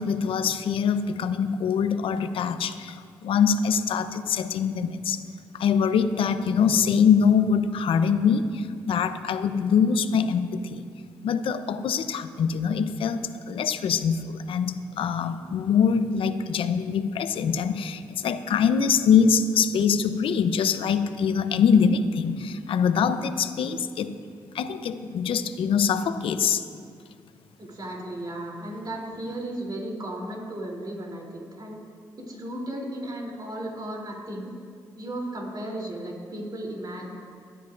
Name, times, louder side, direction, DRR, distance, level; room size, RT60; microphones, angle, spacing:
voice 1, 0.0-5.2 5.5-10.8 11.2-24.1 24.5-26.6, left 6 dB, 70° left, 10 dB, 0.7 m, -24 dB
voice 2, 27.6-31.8 32.2-34.5 35.0-37.0, right 1 dB, 45° right, -2 dB, 3.3 m, -35 dB
23.0 x 10.0 x 2.6 m, 2.1 s
supercardioid pair, 45°, 9 cm